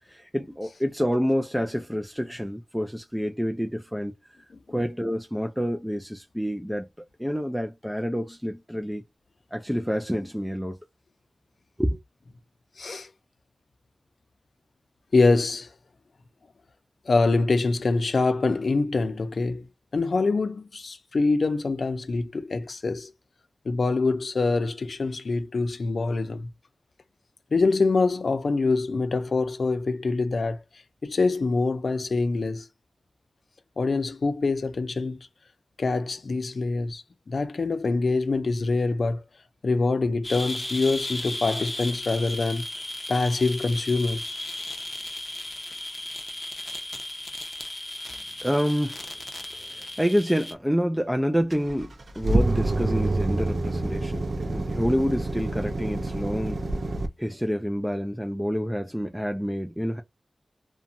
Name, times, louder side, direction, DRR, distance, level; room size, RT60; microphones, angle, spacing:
voice 1, 0.0-4.1 4.7-6.9 7.2-9.0 9.5-10.8 11.8-12.0 48.4-60.0, equal, ahead, 0.4 m, -28 dB
voice 2, 12.8-13.1 15.1-15.7 17.1-19.7 19.9-23.1 23.7-26.5 27.5-30.6 31.0-32.7 33.8-35.3 35.8-39.2 39.6-42.7 43.1-44.4, left 3 dB, 65° left, 0.4 m, -25 dB
sound 1, 40.2-50.5, left 1 dB, 30° left, 0.7 m, -35 dB
sound 2, 51.5-57.1, right 2 dB, 65° right, 0.5 m, -27 dB
2.4 x 2.2 x 2.6 m
wide cardioid pair, 70°, 0 cm